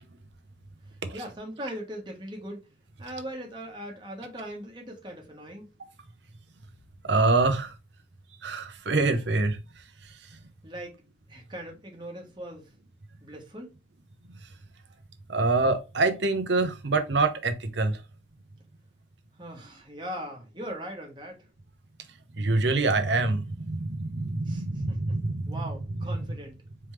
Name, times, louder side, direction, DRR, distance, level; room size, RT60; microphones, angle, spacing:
voice 1, 1.1-2.6 3.0-5.7 10.6-11.0 11.3-12.7 13.2-13.7 19.4-21.4 24.5-25.2 25.5-26.6, equal, 25° right, 1.3 m, -40 dB
voice 2, 7.1-7.7 8.4-9.6 15.3-18.0 22.4-26.0 26.2-26.3, right 3 dB, 70° right, 0.8 m, -25 dB
4.4 x 3.5 x 3.2 m
head